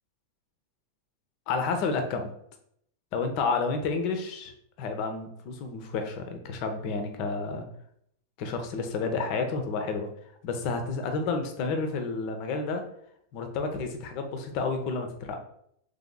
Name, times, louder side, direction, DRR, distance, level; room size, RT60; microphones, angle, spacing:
voice 1, 1.5-2.3 3.1-4.5 4.8-7.7 8.4-10.1 10.4-12.8 13.3-15.4, left 4 dB, 45° left, 6 dB, 0.7 m, -30 dB
3.5 x 3.4 x 3.8 m, 0.72 s
figure-of-eight pair, 90°, 0 cm